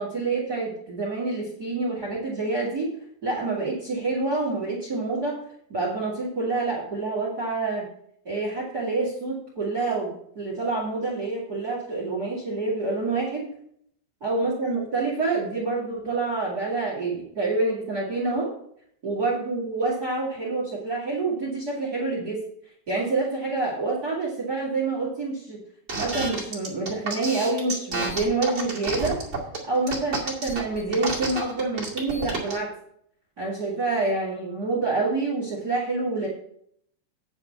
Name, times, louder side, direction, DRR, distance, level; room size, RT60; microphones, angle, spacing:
voice 1, 0.0-2.9 3.2-5.4 5.7-7.9 8.2-13.5 14.2-18.5 19.0-22.4 22.9-25.6 26.0-29.2 29.7-32.7 33.4-36.3, right 3 dB, 50° right, -3 dB, 1.1 m, -27 dB
sound 1, 25.9-32.6, right 3 dB, 30° right, 1.4 m, -30 dB
9.7 x 4.4 x 7.1 m, 0.69 s
omnidirectional pair, 5.0 m